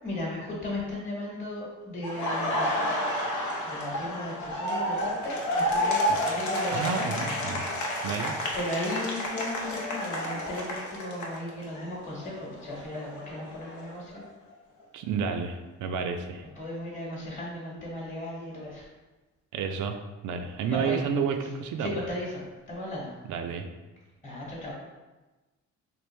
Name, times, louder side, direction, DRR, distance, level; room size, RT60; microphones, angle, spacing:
voice 1, 0.0-2.9 3.6-7.1 8.5-14.2 16.6-18.9 20.7-21.0 21.8-23.1 24.2-24.7, left 1 dB, 25° left, -4 dB, 1.1 m, -36 dB
Laughter, 2.0-11.9 12.2-14.2, equal, 85° left, 0.7 m, -30 dB
voice 2, 6.7-7.7 8.0-8.4 14.9-16.4 19.5-20.0 20.2-21.9 23.3-23.7, right 6 dB, 75° right, 6 dB, 0.5 m, -30 dB
3.4 x 2.5 x 3.1 m, 1.2 s
cardioid pair, 90°, 30 cm